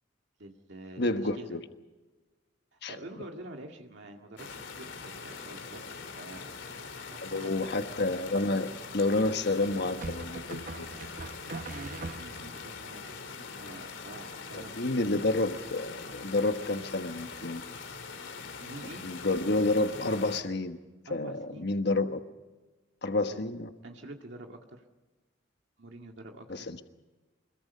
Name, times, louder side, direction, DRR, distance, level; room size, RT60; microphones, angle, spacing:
voice 1, 0.4-1.6 2.7-6.7 7.1-7.7 11.5-14.7 18.6-19.1 21.1-21.7 23.3-23.4 23.8-24.8 25.8-26.7, right 2 dB, 70° right, 2 dB, 2.0 m, -47 dB
voice 2, 1.0-1.6 2.8-2.9 7.2-10.9 14.5-17.6 19.0-20.8 21.1-22.2 23.0-23.7 26.5-26.8, left 2 dB, 60° left, 7 dB, 1.3 m, -29 dB
sound 1, 4.4-20.4, left 5 dB, 90° left, 3.1 m, -43 dB
sound 2, 7.3-7.9 10.0-12.7, right 3 dB, 45° right, 0.8 m, -42 dB
25.5 x 22.5 x 5.6 m, 1.2 s
head